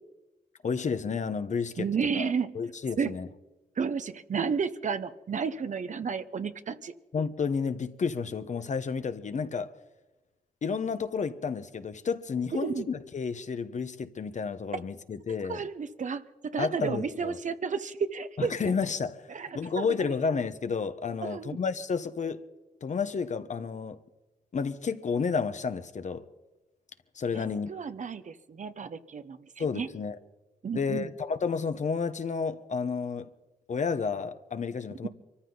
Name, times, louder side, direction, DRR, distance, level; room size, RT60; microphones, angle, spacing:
voice 1, 0.6-1.9 2.1-3.3 7.1-9.7 10.6-15.6 16.6-17.4 18.4-19.3 19.5-22.4 22.8-24.0 24.5-26.2 27.1-27.7 29.6-30.2 30.7-33.3 33.7-35.1, left 5 dB, 55° left, 1.2 m, -31 dB
voice 2, 1.8-2.5 3.0-3.1 3.8-6.9 12.5-12.9 15.5-18.5 19.3-19.8 21.2-21.6 27.3-27.4 27.7-29.9 30.6-31.1 35.0-35.1, right 6 dB, 55° right, 1.2 m, -32 dB
24.5 x 14.0 x 4.0 m
cardioid pair, 65°, 15 cm